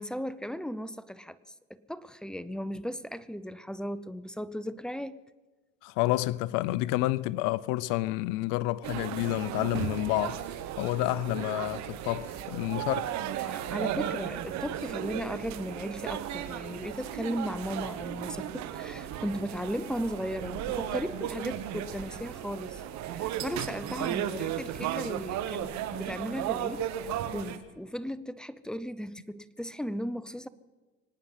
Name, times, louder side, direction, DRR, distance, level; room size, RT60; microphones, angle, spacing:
voice 1, 0.0-1.4 1.7-5.2 13.4-22.8 23.1-30.5, equal, ahead, 0.6 m, -36 dB
voice 2, 5.8-10.4 10.8-13.1, left 18 dB, 75° left, 0.6 m, -29 dB
sound 1, 8.8-27.6, right 11 dB, 60° right, 1.3 m, -35 dB
sound 2, 13.9-25.6, right 5 dB, 85° right, 5.5 m, -50 dB
24.5 x 9.4 x 5.8 m
supercardioid pair, 100°, 31 cm